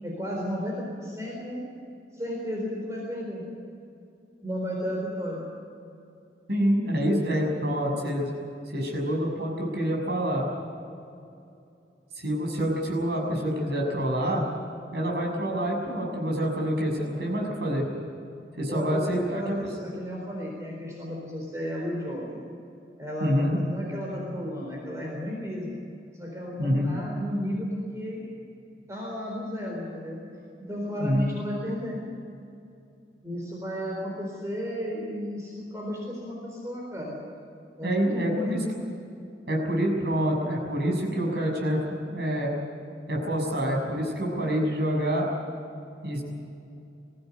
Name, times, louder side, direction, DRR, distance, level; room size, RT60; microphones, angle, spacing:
voice 1, 0.0-1.6 2.1-3.4 4.4-5.5 18.7-22.4 23.0-25.8 26.2-28.2 28.9-30.2 30.6-32.0 33.2-37.2 37.8-38.6, equal, 15° right, -2 dB, 4.2 m, -33 dB
voice 2, 6.5-8.3 8.7-10.5 12.1-14.4 14.9-17.8 18.6-19.5 23.2-23.6 26.6-27.0 31.0-31.3 37.8-38.6 39.5-42.5 43.1-45.3 46.0-46.2, equal, 65° right, 0 dB, 6.7 m, -27 dB
22.5 x 16.0 x 9.4 m, 2.6 s
head